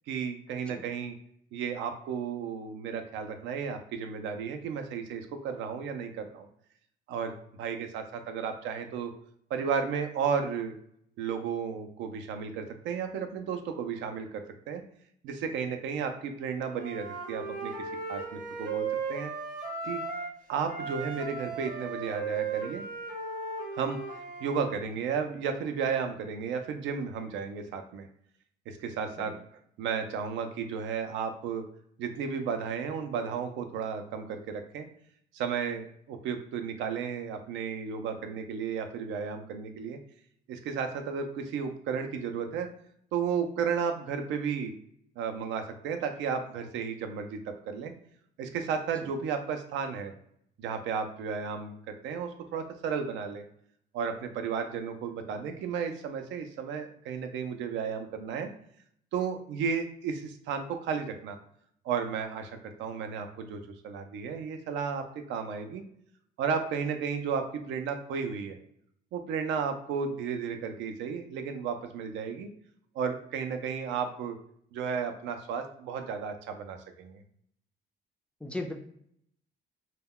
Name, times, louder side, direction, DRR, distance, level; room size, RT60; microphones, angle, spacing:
voice 1, 0.1-1.1 1.5-6.5 7.1-9.1 9.5-10.7 11.2-14.8 15.2-17.7 18.1-19.3 19.8-20.0 20.5-22.8 23.7-24.0 24.4-28.1 28.7-29.3 29.8-31.6 32.0-34.9 35.3-40.0 40.5-42.7 43.1-44.7 45.2-47.9 48.4-50.1 50.6-53.4 53.9-58.5 59.1-61.4 61.8-65.8 66.4-68.6 69.1-72.5 72.9-74.4 74.7-77.2, right 6 dB, 90° right, 6 dB, 0.4 m, -33 dB
Wind instrument woodwind instrument, 16.7-20.4 20.7-24.6, right 4 dB, 45° right, 0.8 m, -36 dB
voice 2, 78.4-78.7, left 2 dB, 5° left, 2 dB, 0.3 m, -37 dB
2.2 x 2.2 x 3.5 m, 0.68 s
cardioid pair, 125°, 19 cm